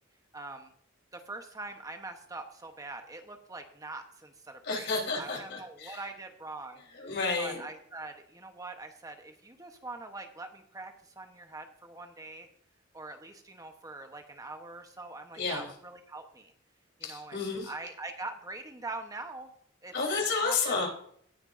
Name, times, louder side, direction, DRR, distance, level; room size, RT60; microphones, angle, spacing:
voice 1, 0.3-0.7 1.1-4.9 5.2-6.8 7.4-12.5 12.9-16.5 17.0-19.5 19.8-19.9 20.4-20.7, right 2 dB, 20° right, 5 dB, 1.0 m, -43 dB
voice 2, 4.6-6.0 6.9-7.6 15.3-15.7 17.0-17.7 19.9-20.9, left 4 dB, 60° left, 1 dB, 3.8 m, -31 dB
17.5 x 8.8 x 2.6 m, 0.62 s
head